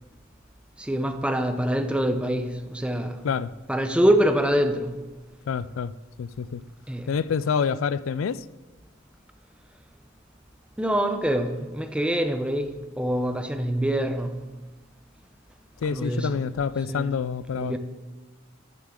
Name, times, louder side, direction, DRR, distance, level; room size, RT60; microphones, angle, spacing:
voice 1, 0.8-3.2 3.7-4.9 6.9-7.1 10.8-14.3 15.8-16.4 16.9-17.1 17.5-17.8, equal, 5° right, 0.7 m, -25 dB
voice 2, 5.5-5.9 6.2-6.6 7.1-8.4 15.8-17.8, left 6 dB, 85° left, 0.4 m, -27 dB
13.0 x 9.2 x 3.7 m
head